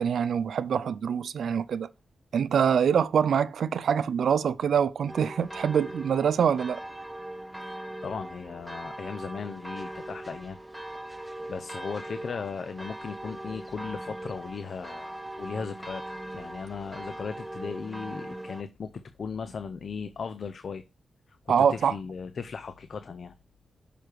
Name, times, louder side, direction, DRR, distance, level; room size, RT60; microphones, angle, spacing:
voice 1, 0.0-1.9 2.3-6.8 21.5-21.9, right 7 dB, 80° right, 0.4 m, -25 dB
sound 1, 5.1-18.6, right 1 dB, 10° right, 1.1 m, -40 dB
voice 2, 7.7-10.6 11.1-20.8 21.5-23.3, left 5 dB, 65° left, 0.6 m, -37 dB
6.7 x 4.9 x 4.6 m
cardioid pair, 70°, 0 cm